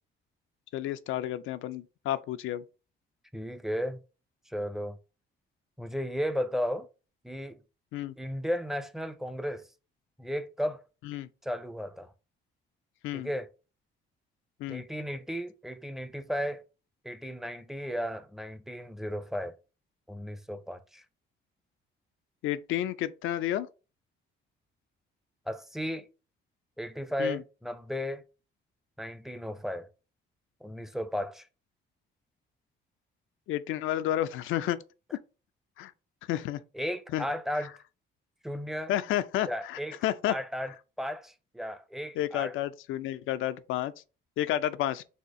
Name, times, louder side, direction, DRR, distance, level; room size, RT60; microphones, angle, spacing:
voice 1, 0.7-2.6 7.9-8.1 11.1-11.3 13.0-13.3 14.6-14.8 22.4-23.7 27.2-27.4 33.5-34.8 35.8-35.9 36.3-36.6 37.1-37.3 38.9-40.3 42.2-43.9 44.4-45.0, left 13 dB, 85° left, 0.4 m, -31 dB
voice 2, 3.3-4.0 4.5-5.0 5.8-6.9 7.2-7.6 8.2-9.7 10.2-10.8 11.4-12.1 13.1-13.5 14.7-16.6 17.0-19.5 20.1-21.0 25.5-26.1 26.8-28.2 29.0-29.9 30.6-31.5 36.7-37.7 38.4-38.9 39.5-40.7 41.0-42.5, equal, ahead, 0.5 m, -34 dB
4.2 x 2.4 x 4.7 m
cardioid pair, 90°, 20 cm